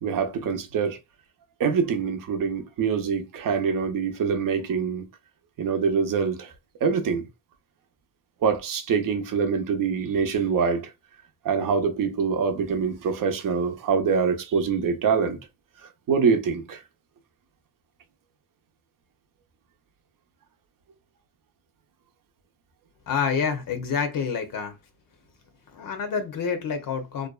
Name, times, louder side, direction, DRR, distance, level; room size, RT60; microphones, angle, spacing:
voice 1, 0.0-1.0 1.6-5.1 5.6-6.5 6.8-7.2 8.4-10.9 11.4-15.4 15.8-16.8, right 6 dB, 60° right, 0.6 m, -25 dB
voice 2, 23.1-24.8 25.7-27.3, left 6 dB, 60° left, 0.7 m, -28 dB
2.5 x 2.2 x 2.2 m
cardioid pair, 85°, 38 cm